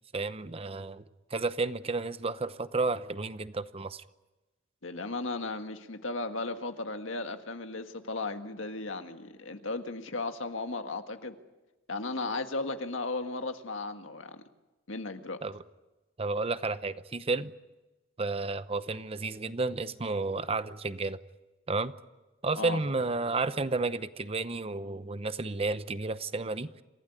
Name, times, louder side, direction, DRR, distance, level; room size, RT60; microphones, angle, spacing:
voice 1, 0.1-1.0 1.3-4.0 15.4-15.6 16.2-17.5 18.2-21.2 21.7-21.9 22.4-26.7, right 3 dB, 30° right, 13 dB, 0.8 m, -32 dB
voice 2, 4.8-11.4 11.9-14.4 14.9-15.4 22.6-22.8, left 3 dB, 90° left, 7 dB, 1.8 m, -35 dB
27.5 x 16.0 x 10.0 m, 1.1 s
head